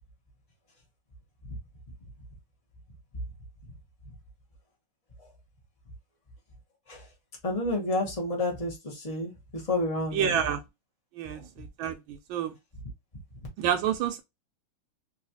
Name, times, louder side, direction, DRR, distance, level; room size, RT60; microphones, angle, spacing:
voice 1, 7.4-10.3 11.3-11.4, left 2 dB, 45° left, 0.4 m, -30 dB
voice 2, 10.1-10.6 11.1-12.6 13.6-14.2, right 9 dB, 80° right, 1.3 m, -29 dB
3.8 x 2.3 x 2.6 m
omnidirectional pair, 2.2 m